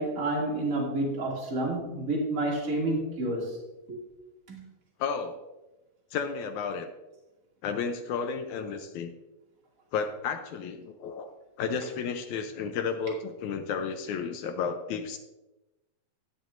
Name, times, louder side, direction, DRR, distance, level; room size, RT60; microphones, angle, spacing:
voice 1, 0.0-3.5 3.9-4.0 4.5-4.6, right 2 dB, 25° right, -2 dB, 2.5 m, -29 dB
voice 2, 5.0-5.4 6.1-6.9 7.6-9.1 9.9-11.3 11.6-15.2, left 6 dB, 75° left, 7 dB, 2.0 m, -32 dB
14.0 x 10.0 x 2.6 m, 1.0 s
omnidirectional pair, 3.6 m